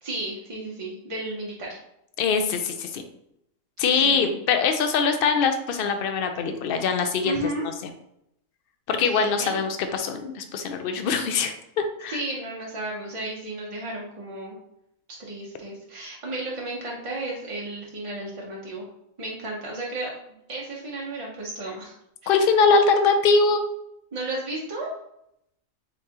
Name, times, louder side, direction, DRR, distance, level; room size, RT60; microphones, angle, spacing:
voice 1, 0.0-1.8 3.9-4.4 7.2-7.7 9.1-9.7 12.1-14.6 15.2-18.9 19.2-20.1 20.5-21.9 22.2-22.4 24.1-24.9, right 2 dB, 40° right, -3 dB, 0.4 m, -33 dB
voice 2, 2.2-3.0 3.8-7.4 8.9-11.5 12.0-12.2 22.3-23.6, left 5 dB, 65° left, 6 dB, 0.5 m, -22 dB
4.1 x 3.7 x 2.8 m, 0.78 s
omnidirectional pair, 1.4 m